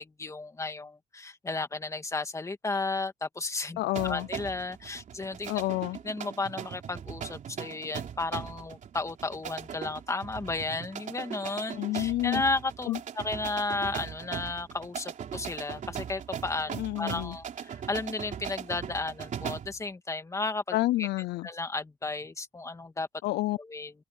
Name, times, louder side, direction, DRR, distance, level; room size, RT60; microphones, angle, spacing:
voice 1, 0.0-5.6 6.0-16.7 17.0-21.1 21.4-23.1 23.6-23.9, left 3 dB, 15° left, 2.5 m, -33 dB
voice 2, 3.8-4.3 5.5-6.0 11.8-12.4 12.8-13.0 16.7-17.4 20.7-21.5 23.2-23.6, left 17 dB, 80° left, 0.6 m, -29 dB
sound 1, 4.0-19.8, right 8 dB, 50° right, 3.3 m, -40 dB
cardioid pair, 110°, 17 cm